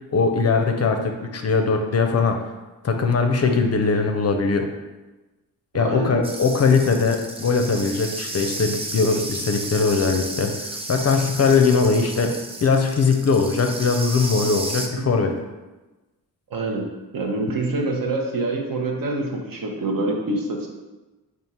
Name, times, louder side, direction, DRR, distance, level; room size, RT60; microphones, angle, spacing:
voice 1, 0.1-2.4 2.8-4.6 5.7-12.3 12.6-15.3, left 4 dB, 40° left, 4 dB, 0.5 m, -20 dB
voice 2, 5.8-6.1 16.5-16.9 17.1-20.7, right 2 dB, 60° right, 1 dB, 0.8 m, -25 dB
sound 1, 6.2-14.9, right 2 dB, 15° right, 0.5 m, -33 dB
3.6 x 2.5 x 4.1 m, 1.1 s
cardioid pair, 60°, 39 cm